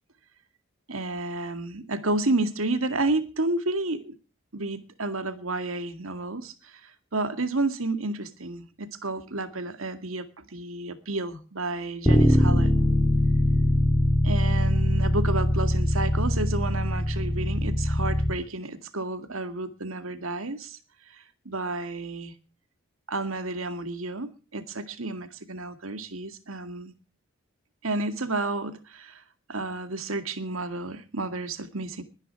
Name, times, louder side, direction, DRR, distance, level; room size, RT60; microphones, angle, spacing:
voice 1, 0.9-4.2 4.5-12.7 14.2-20.8 21.1-22.3 23.1-26.9 27.8-29.2 29.5-32.0, right 2 dB, 80° right, 9 dB, 2.2 m, -31 dB
Bass guitar, 12.1-18.3, left 1 dB, 15° left, 3.1 m, -22 dB
21.0 x 10.5 x 4.6 m, 0.35 s
head